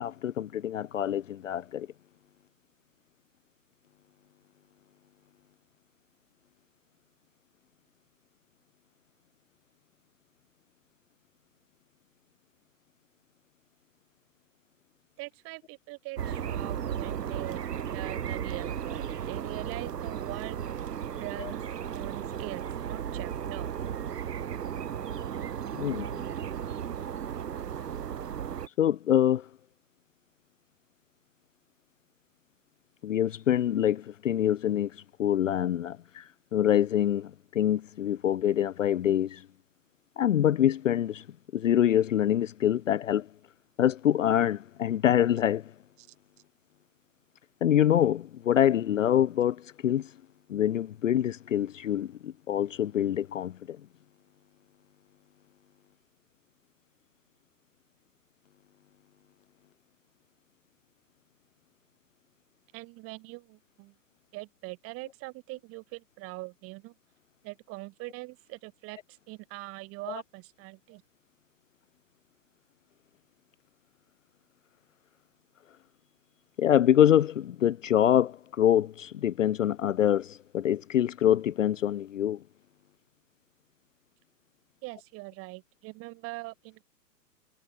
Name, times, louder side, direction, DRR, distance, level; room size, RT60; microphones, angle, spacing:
voice 1, 0.0-1.9 21.4-21.5 25.7-26.1 28.8-29.5 33.0-39.4 40.2-41.2 41.5-43.3 43.8-45.7 47.6-50.1 50.5-53.8 70.1-70.2 76.6-82.4, left 10 dB, 50° left, 0.9 m, -25 dB
voice 2, 15.2-21.6 21.9-23.7 46.0-46.1 62.7-63.9 64.3-66.9 67.4-71.0 84.8-86.8, right 24 dB, 25° right, 5.3 m, -42 dB
sound 1, 16.2-28.7, right 8 dB, 70° right, 0.9 m, -35 dB
figure-of-eight pair, 120°, 50 cm